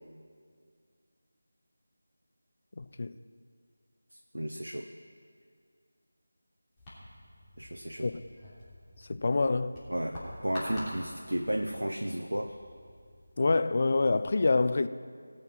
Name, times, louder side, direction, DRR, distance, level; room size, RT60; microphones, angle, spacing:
voice 1, 2.8-3.1 8.0-8.2 9.1-9.7 13.4-14.9, left 3 dB, 40° left, 0.4 m, -26 dB
voice 2, 4.3-4.9 7.6-8.1 9.9-12.6, right 1 dB, 75° right, 0.8 m, -33 dB
sound 1, 6.8-13.3, equal, 15° left, 3.1 m, -47 dB
18.0 x 6.6 x 6.0 m
figure-of-eight pair, 165°, 0 cm